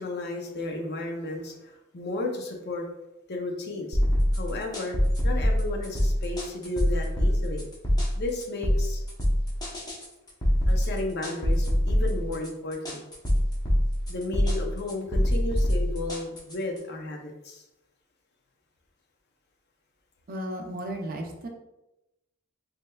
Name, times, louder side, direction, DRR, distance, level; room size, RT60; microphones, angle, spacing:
voice 1, 0.0-2.9 3.3-4.0 4.3-5.0 5.2-7.7 8.2-9.0 10.7-13.0 14.1-17.6, left 2 dB, 50° left, 2 dB, 0.5 m, -33 dB
sound 1, 3.9-16.8, equal, 20° left, 0.8 m, -25 dB
voice 2, 20.3-21.5, right 1 dB, 45° right, 1 dB, 0.5 m, -34 dB
3.3 x 3.2 x 2.2 m, 0.91 s
head